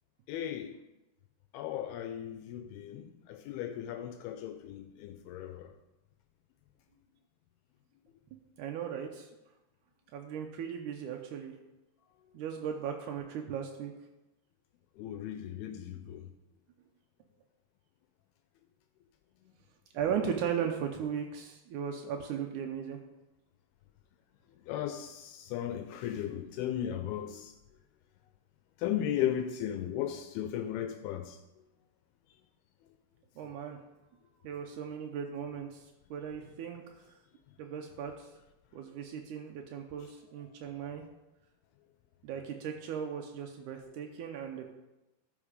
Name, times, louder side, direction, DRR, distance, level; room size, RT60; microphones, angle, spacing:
voice 1, 0.3-0.8 1.5-5.7 15.0-16.3 24.6-27.5 28.8-31.4 40.0-40.1 40.8-41.0, left 10 dB, 80° left, 2.4 m, -36 dB
voice 2, 8.6-9.3 10.1-11.6 12.3-13.9 19.9-23.0 33.4-33.8 34.4-36.8 37.6-38.3 38.7-41.1 42.2-44.7, right 8 dB, 85° right, 1.7 m, -37 dB
13.5 x 5.6 x 5.0 m
omnidirectional pair, 4.6 m